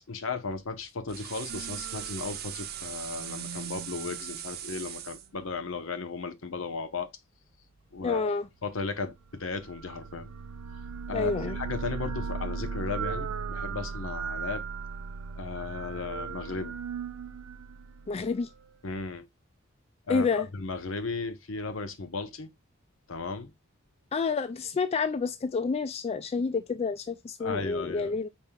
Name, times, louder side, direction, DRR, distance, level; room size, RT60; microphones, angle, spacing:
voice 1, 0.1-7.1 7.9-8.3 8.6-10.3 11.1-14.7 15.4-16.7 18.8-19.3 20.1-22.5 23.1-23.5 27.4-28.2, left 4 dB, 70° left, 0.8 m, -35 dB
sound 1, 1.1-5.3, right 10 dB, 50° right, 0.7 m, -39 dB
sound 2, 1.5-5.1 9.3-18.6, right 5 dB, 85° right, 0.4 m, -38 dB
voice 2, 8.0-8.5 11.1-11.6 18.1-18.5 20.1-20.5 24.1-28.3, left 4 dB, 30° left, 0.3 m, -29 dB
5.3 x 4.3 x 2.2 m
head